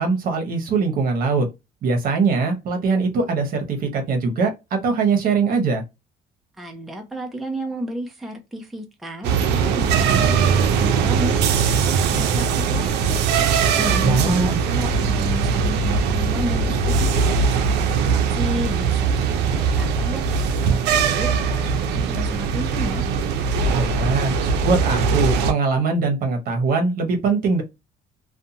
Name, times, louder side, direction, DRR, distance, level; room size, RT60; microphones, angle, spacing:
voice 1, 0.0-1.5 1.8-5.8 14.0-14.6 23.7-24.4 24.6-27.6, right 4 dB, 60° right, 0.9 m, -21 dB
voice 2, 6.6-13.2 13.6-17.1 17.5-20.2 20.6-23.0, equal, ahead, 0.5 m, -32 dB
sound 1, 9.2-25.5, right 5 dB, 85° right, 0.5 m, -20 dB
2.6 x 2.2 x 2.7 m
cardioid pair, 110°, 17 cm